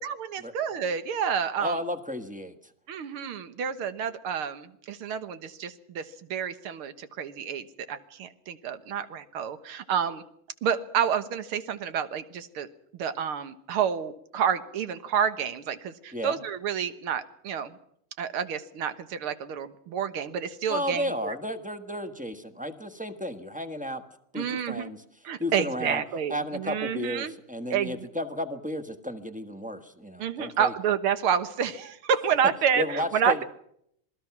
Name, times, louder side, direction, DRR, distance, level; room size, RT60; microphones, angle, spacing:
voice 1, 0.0-1.8 2.9-10.2 10.6-12.7 12.9-17.7 18.2-21.3 24.4-24.9 25.2-27.3 27.7-28.1 30.2-33.4, right 7 dB, 80° right, 11 dB, 2.2 m, -29 dB
voice 2, 1.6-2.5 16.1-16.4 20.7-24.0 24.3-25.0 25.4-26.0 26.3-30.7 32.7-33.4, equal, 5° right, 8 dB, 0.9 m, -33 dB
27.0 x 19.5 x 6.0 m, 0.71 s
omnidirectional pair, 2.4 m